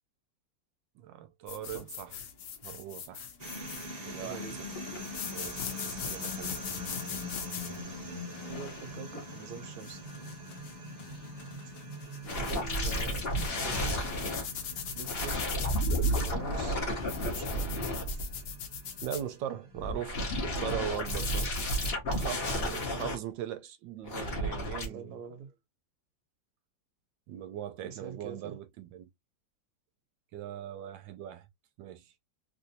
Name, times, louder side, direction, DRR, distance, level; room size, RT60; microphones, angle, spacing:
voice 1, 1.0-2.1 2.6-3.3 4.0-4.5 5.3-6.6 12.3-12.6 19.0-21.5 22.1-25.1 27.3-29.1 30.3-31.5 31.8-32.1, right 10 dB, 80° right, 1.3 m, -40 dB
sound 1, 1.5-19.3, left 7 dB, 70° left, 1.3 m, -42 dB
sound 2, 3.4-21.9, left 1 dB, 30° right, 0.8 m, -44 dB
voice 2, 4.2-4.6 8.5-10.0 12.4-13.3 13.6-14.0 14.9-15.4 16.2-16.8 17.2-17.7 18.1-18.2 22.6-23.1 24.8-25.5 27.8-28.6, right 6 dB, 60° right, 1.3 m, -44 dB
sound 3, 12.2-14.4 15.0-18.5 19.7-23.1 24.0-24.8, equal, 40° left, 1.0 m, -32 dB
3.3 x 2.6 x 2.7 m
omnidirectional pair, 2.0 m